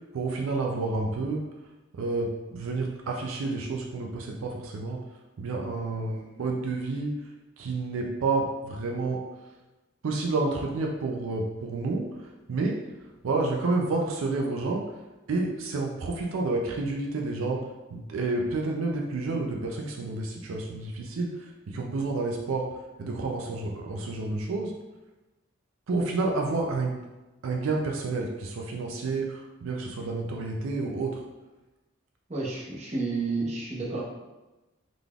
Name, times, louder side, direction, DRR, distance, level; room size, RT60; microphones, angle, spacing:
voice 1, 0.0-1.4 1.9-5.0 5.4-7.2 7.6-9.2 10.0-12.8 13.2-14.8 15.3-17.6 17.9-22.7 23.0-24.7 25.9-27.0 27.4-31.2, right 3 dB, 85° right, 1 dB, 0.4 m, -29 dB
voice 2, 32.3-34.0, right 3 dB, 35° right, -5 dB, 0.9 m, -30 dB
3.9 x 3.4 x 2.3 m, 1.1 s
head